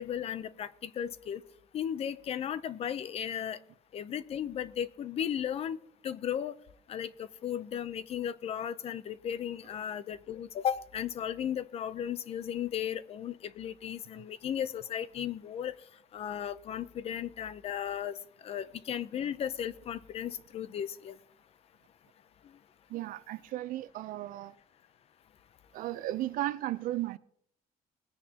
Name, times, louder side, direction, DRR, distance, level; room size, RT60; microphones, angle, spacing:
voice 1, 0.0-1.4 1.7-3.6 3.9-5.8 6.0-6.5 6.9-15.7 16.1-18.2 18.4-21.2, left 9 dB, 45° left, 0.6 m, -35 dB
voice 2, 22.9-24.5 25.7-27.2, right 15 dB, 70° right, 0.6 m, -35 dB
20.5 x 10.0 x 2.9 m
cardioid pair, 155°, 15 cm